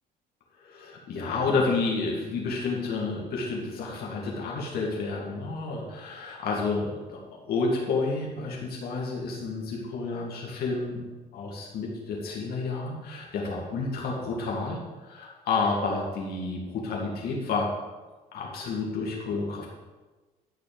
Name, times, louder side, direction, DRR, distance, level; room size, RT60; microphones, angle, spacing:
voice 1, 0.6-7.2 7.5-11.0 11.3-14.8 15.0-17.7 18.3-19.7, left 3 dB, 65° left, -2 dB, 2.1 m, -30 dB
12.5 x 4.3 x 7.0 m, 1.3 s
cardioid pair, 110°, 17 cm